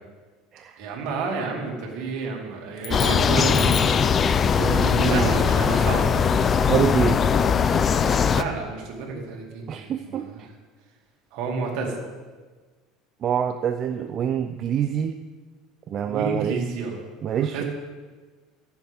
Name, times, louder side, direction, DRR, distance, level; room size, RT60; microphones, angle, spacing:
voice 1, 0.8-3.9 4.9-6.3 8.3-10.4 11.3-11.9 16.0-17.0 17.5-17.6, right 4 dB, 65° right, 0 dB, 2.5 m, -30 dB
sound 1, 2.8-4.1, left 10 dB, 55° left, 1.0 m, -36 dB
sound 2, 2.9-8.4, left 6 dB, 30° left, 0.4 m, -20 dB
voice 2, 4.6-5.3 6.7-7.2 9.7-10.5 13.2-15.2 15.9-16.6 17.2-17.6, right 8 dB, 40° right, 7 dB, 0.4 m, -26 dB
15.5 x 7.1 x 3.6 m, 1.4 s
supercardioid pair, 110°, 0 cm